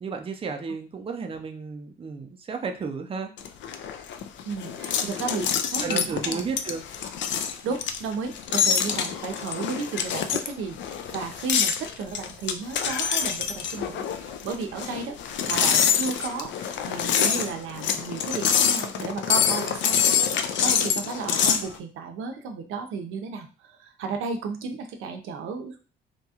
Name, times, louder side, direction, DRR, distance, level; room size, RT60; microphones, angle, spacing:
voice 1, 0.0-3.3 5.8-6.8, right 5 dB, 30° right, 4 dB, 0.5 m, -33 dB
sound 1, 3.4-21.7, left 8 dB, 70° left, 0.4 m, -26 dB
voice 2, 4.4-6.5 7.6-15.2 15.5-20.2 20.6-25.8, right 5 dB, 85° right, 4 dB, 0.5 m, -33 dB
2.8 x 2.2 x 2.7 m, 0.36 s
cardioid pair, 90°, 20 cm